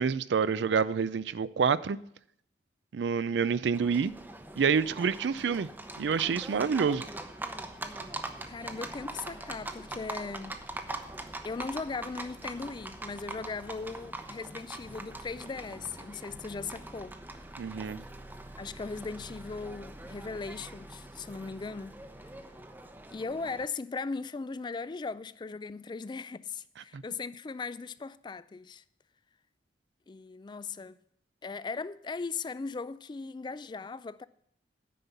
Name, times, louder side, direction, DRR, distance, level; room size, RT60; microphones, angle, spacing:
voice 1, 0.0-2.0 2.9-4.1 4.6-5.7 6.0-7.0 17.6-18.0 26.9-27.0, right 6 dB, 75° right, 0.4 m, -27 dB
Livestock farm animals working animals, 3.7-23.6, right 2 dB, 10° right, 0.7 m, -43 dB
voice 2, 8.5-10.6 11.4-17.1 18.6-22.0 23.1-28.8 30.1-31.0 31.4-34.2, left 4 dB, 25° left, 0.3 m, -38 dB
9.3 x 5.5 x 8.2 m
head